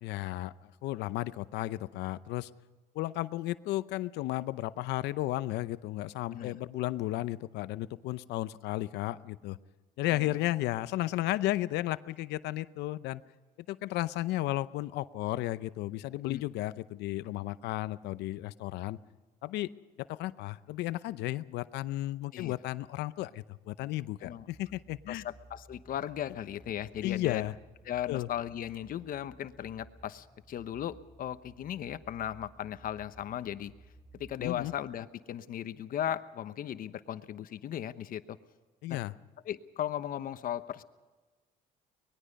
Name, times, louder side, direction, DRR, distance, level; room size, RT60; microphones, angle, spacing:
voice 1, 0.0-2.5 2.9-9.6 10.0-13.2 13.7-19.0 19.4-19.7 20.0-25.2 27.0-27.5 28.1-28.3 34.4-34.7 38.8-39.1, left 16 dB, 85° left, 15 dB, 0.7 m, -34 dB
sound 1, 24.3-34.8, right 2 dB, 5° left, 2.8 m, -57 dB
voice 2, 25.1-27.4 27.9-33.7 34.1-38.4 38.9-39.0 39.5-40.8, left 10 dB, 55° left, 12 dB, 1.0 m, -37 dB
24.0 x 20.5 x 5.3 m, 1.3 s
cardioid pair, 110°, 17 cm